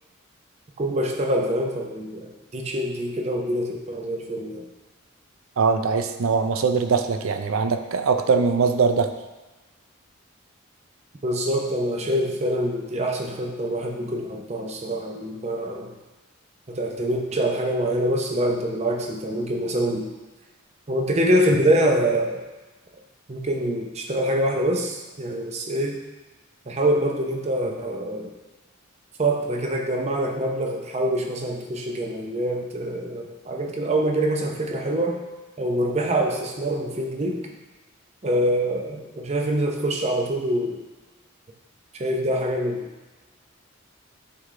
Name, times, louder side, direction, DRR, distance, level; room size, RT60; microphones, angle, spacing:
voice 1, 0.8-4.7 11.2-16.0 16.7-20.1 20.9-22.4 23.3-26.0 26.7-28.3 29.2-35.2 35.6-37.4 38.2-40.8 42.0-42.9, right 1 dB, 30° right, 2 dB, 0.6 m, -25 dB
voice 2, 5.6-9.1, right 5 dB, 75° right, 8 dB, 0.5 m, -21 dB
8.1 x 3.8 x 3.2 m, 1.2 s
head